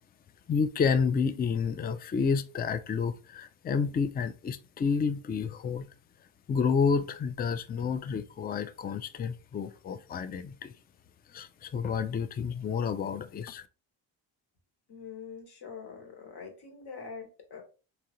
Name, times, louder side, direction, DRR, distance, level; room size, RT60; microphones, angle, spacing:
voice 1, 0.5-5.9 6.5-10.7 11.3-13.6, left 5 dB, 20° left, 0.4 m, -30 dB
voice 2, 14.9-17.6, left 5 dB, 50° left, 1.5 m, -44 dB
3.7 x 2.8 x 2.9 m
supercardioid pair, 60°, 48 cm